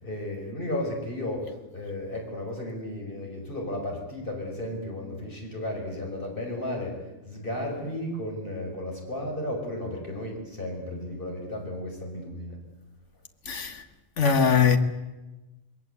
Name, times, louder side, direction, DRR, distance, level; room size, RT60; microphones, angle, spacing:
voice 1, 0.0-12.6, left 1 dB, 50° left, 6.0 m, -34 dB
voice 2, 13.5-13.8 14.2-14.8, left 6 dB, 85° left, 1.8 m, -21 dB
27.5 x 21.0 x 8.2 m
omnidirectional pair, 1.2 m